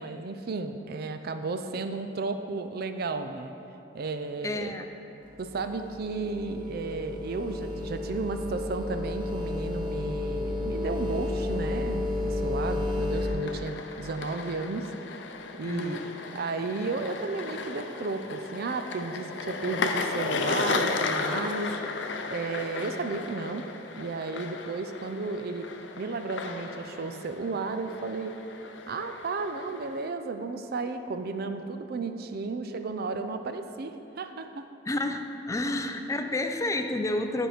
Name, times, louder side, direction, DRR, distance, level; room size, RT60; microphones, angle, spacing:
voice 1, 0.0-3.5 3.9-4.7 5.4-14.9 15.5-16.0 16.3-21.8 22.3-23.6 24.0-25.7 26.0-28.4 28.9-34.7, right 3 dB, 55° right, 8 dB, 0.5 m, -33 dB
voice 2, 4.4-4.9 15.6-16.1 34.9-37.5, left 2 dB, 15° left, 6 dB, 0.4 m, -30 dB
sound 1, 5.2-13.3, left 2 dB, 30° right, 1.4 m, -32 dB
sound 2, 13.1-30.1, left 4 dB, 70° left, 0.5 m, -35 dB
10.0 x 4.6 x 5.0 m, 2.9 s
head